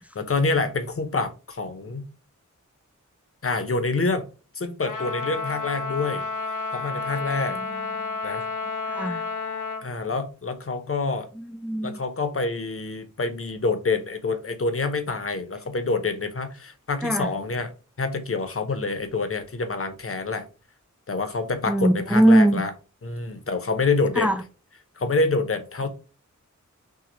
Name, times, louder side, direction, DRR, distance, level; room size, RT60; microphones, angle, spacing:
voice 1, 0.2-2.0 3.4-4.3 4.5-6.3 6.7-7.6 8.2-8.4 9.8-11.3 11.8-17.7 18.0-20.5 21.1-22.7 23.0-24.3 25.0-25.9, left 3 dB, 45° left, 0.8 m, -27 dB
Trumpet, 4.8-9.9, left 4 dB, 75° left, 1.1 m, -31 dB
voice 2, 7.5-8.1 8.9-9.3 11.4-12.0 17.0-17.3 21.7-22.6 24.2-24.4, right 1 dB, 5° right, 0.6 m, -21 dB
6.2 x 2.3 x 3.0 m
wide cardioid pair, 75°, 31 cm